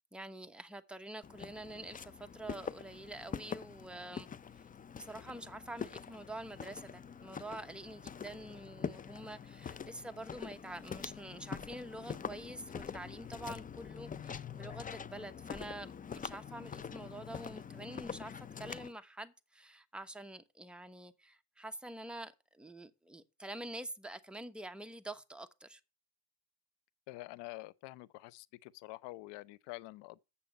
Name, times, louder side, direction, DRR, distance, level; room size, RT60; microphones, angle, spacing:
voice 1, 0.1-4.3 5.0-25.8, right 1 dB, ahead, 1.0 m, -47 dB
Walk footsteps, 1.2-18.9, left 7 dB, 20° left, 0.4 m, -45 dB
voice 2, 27.1-30.2, left 19 dB, 90° left, 0.7 m, -47 dB
8.5 x 7.0 x 5.1 m
cardioid pair, 100°, 41 cm